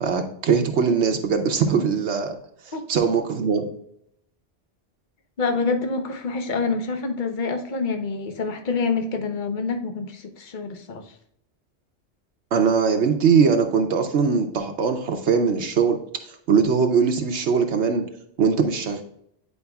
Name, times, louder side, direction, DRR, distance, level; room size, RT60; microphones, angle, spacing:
voice 1, 0.0-2.3 2.9-3.6 12.5-16.0 16.5-18.0 18.4-19.0, right 6 dB, 75° right, 4 dB, 1.0 m, -21 dB
voice 2, 5.4-11.1, left 4 dB, 50° left, 6 dB, 0.9 m, -27 dB
9.5 x 4.8 x 2.3 m, 0.72 s
omnidirectional pair, 1.2 m